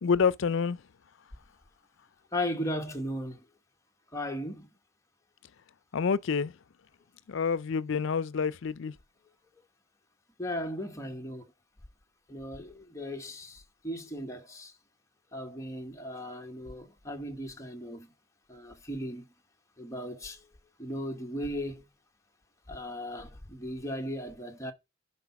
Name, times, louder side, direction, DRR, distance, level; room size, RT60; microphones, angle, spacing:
voice 1, 0.0-0.8 5.9-6.6 7.3-8.9, left 6 dB, 65° left, 0.5 m, -28 dB
voice 2, 2.3-3.4 4.1-4.7 10.4-11.4 12.3-14.7 15.3-18.1 18.5-19.3 19.8-20.4 20.8-21.9 22.7-24.7, equal, 15° left, 1.1 m, -37 dB
10.0 x 4.0 x 5.8 m
head